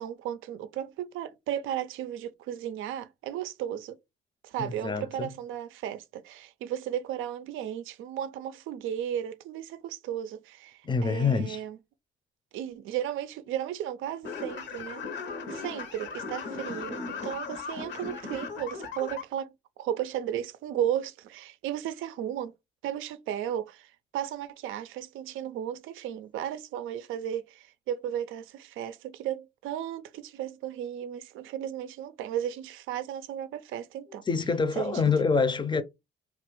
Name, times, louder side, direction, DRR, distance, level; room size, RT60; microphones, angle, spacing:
voice 1, 0.0-4.0 4.4-11.8 12.5-15.0 15.5-22.5 22.8-34.2 34.8-35.1, right 10 dB, 85° right, 0.4 m, -35 dB
voice 2, 4.6-5.3 10.8-11.6 34.3-35.8, left 5 dB, 25° left, 0.5 m, -26 dB
sound 1, 14.2-19.2, left 4 dB, 65° left, 0.8 m, -37 dB
3.0 x 2.4 x 3.0 m
cardioid pair, 90°, 20 cm